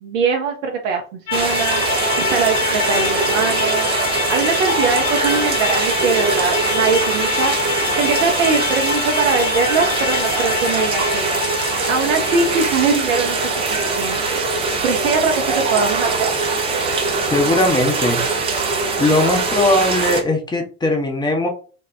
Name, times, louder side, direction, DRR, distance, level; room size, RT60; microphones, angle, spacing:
voice 1, 0.0-1.8 2.2-7.5 8.0-16.3, right 5 dB, 55° right, 2 dB, 0.6 m, -22 dB
sound 1, 1.3-19.6, left 7 dB, 60° left, 0.6 m, -27 dB
sound 2, 1.3-20.2, right 4 dB, 15° right, 0.3 m, -22 dB
voice 2, 17.3-18.2 19.0-21.5, left 2 dB, 10° left, 2 dB, 0.7 m, -19 dB
2.8 x 2.1 x 3.2 m, 0.38 s
figure-of-eight pair, 70°, 45 cm